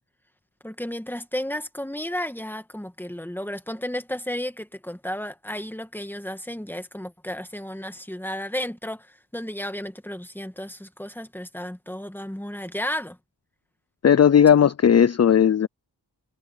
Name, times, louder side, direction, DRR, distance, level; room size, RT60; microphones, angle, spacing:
voice 1, 0.6-13.2, left 1 dB, 5° left, 2.0 m, -33 dB
voice 2, 14.0-15.7, left 8 dB, 40° left, 0.5 m, -16 dB
wide cardioid pair, 65°, 42 cm